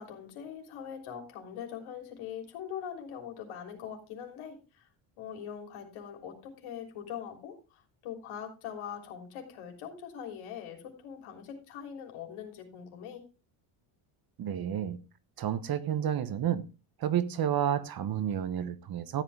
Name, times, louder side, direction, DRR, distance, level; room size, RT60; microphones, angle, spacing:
voice 1, 0.0-4.9 5.2-13.2, left 8 dB, 75° left, 4 dB, 3.5 m, -42 dB
voice 2, 14.4-15.0 15.4-16.7 17.0-19.2, right 9 dB, 45° right, 13 dB, 1.1 m, -30 dB
13.5 x 8.6 x 3.4 m, 0.30 s
cardioid pair, 110°, 49 cm